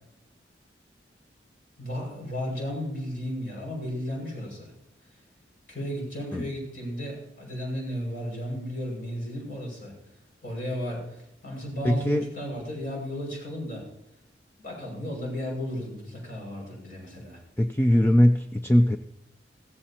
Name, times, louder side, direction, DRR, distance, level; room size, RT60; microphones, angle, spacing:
voice 1, 1.8-4.7 5.7-9.9 10.4-13.8 14.6-17.4, equal, 50° left, -1 dB, 6.0 m, -34 dB
voice 2, 11.8-12.3 17.6-19.0, left 1 dB, 10° left, 6 dB, 0.4 m, -21 dB
15.5 x 15.0 x 2.9 m, 0.85 s
head